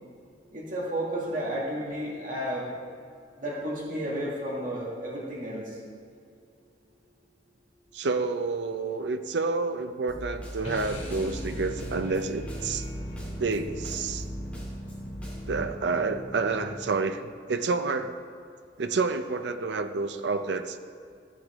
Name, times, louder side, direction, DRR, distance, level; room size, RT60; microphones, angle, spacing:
voice 1, 0.5-2.7 3.4-5.8, equal, 50° right, -5 dB, 2.2 m, -32 dB
voice 2, 7.9-12.9 13.4-14.2 15.5-18.2 18.8-20.8, right 4 dB, 70° right, 8 dB, 0.5 m, -29 dB
Snare drum, 10.1-15.6, equal, 10° left, 2.8 m, -39 dB
sound 1, 10.6-17.1, equal, 35° left, 2.1 m, -39 dB
14.5 x 8.3 x 3.6 m, 2.3 s
head